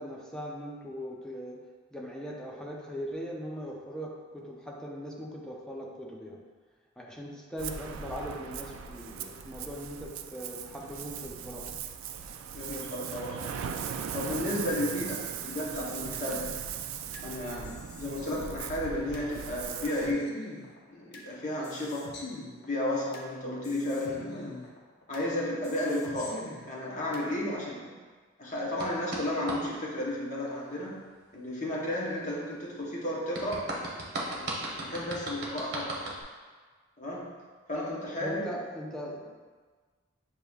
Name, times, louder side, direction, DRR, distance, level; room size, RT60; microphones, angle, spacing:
voice 1, 0.0-6.4 7.0-11.8 38.2-39.3, equal, 5° left, -3 dB, 0.5 m, -40 dB
Ocean, 7.6-20.1, right 7 dB, 90° right, 0.3 m, -39 dB
voice 2, 12.5-13.7 14.1-16.5 17.2-20.3 20.9-22.1 22.7-24.6 25.1-26.4 26.7-27.9 28.4-31.0 31.3-33.7 34.3-36.0 37.0-37.3 37.7-38.4, left 1 dB, 40° left, -5 dB, 0.9 m, -33 dB
sound 1, 15.7-17.3 17.6-19.3 19.6-21.3 21.6-23.3 23.6-25.3 25.6-27.3, left 2 dB, 55° left, 0.6 m, -45 dB
sound 2, 28.8-29.6 33.3-36.2, right 1 dB, 55° right, 0.8 m, -36 dB
6.7 x 2.8 x 2.3 m, 1.5 s
head